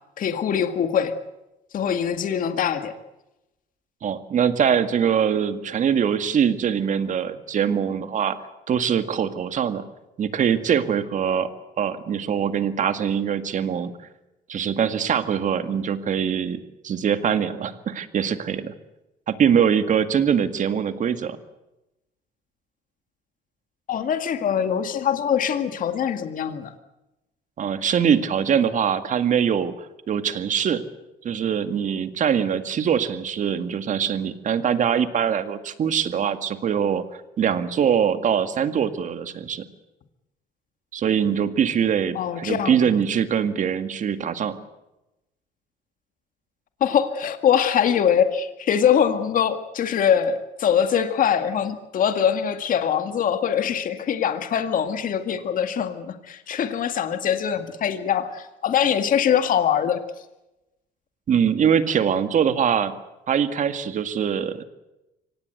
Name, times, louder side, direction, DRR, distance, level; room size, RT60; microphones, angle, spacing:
voice 1, 0.2-1.1 1.7-2.9 23.9-26.7 42.1-42.7 46.8-60.0, left 8 dB, 55° left, 8 dB, 2.1 m, -23 dB
voice 2, 4.0-8.4 8.7-9.8 10.2-11.5 11.8-13.9 14.5-18.7 19.3-21.4 27.6-30.8 31.2-37.0 37.4-39.6 40.9-44.6 61.3-62.9 63.3-64.6, right 8 dB, 50° right, 10 dB, 2.0 m, -23 dB
25.0 x 18.5 x 8.0 m, 0.95 s
cardioid pair, 110°, 17 cm